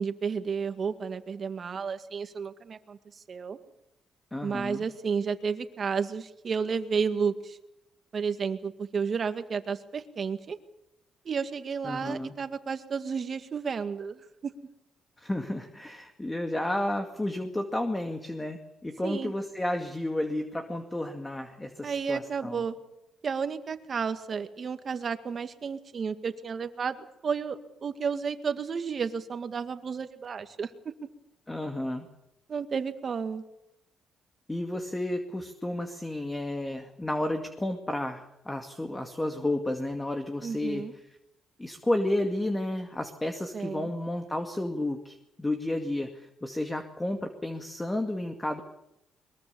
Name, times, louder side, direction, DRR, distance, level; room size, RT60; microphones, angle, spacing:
voice 1, 0.0-3.6 4.4-7.6 8.1-10.6 11.3-14.5 19.0-19.3 21.8-22.8 23.2-27.0 27.2-30.9 32.5-33.4 40.4-40.9 43.5-43.9, right 6 dB, 45° right, 9 dB, 2.0 m, -32 dB
voice 2, 4.3-4.8 11.8-12.3 15.2-22.6 31.5-32.1 34.5-40.8 41.6-48.6, left 1 dB, 15° left, 5 dB, 2.2 m, -32 dB
22.5 x 22.0 x 7.0 m, 0.86 s
cardioid pair, 90°, 0 cm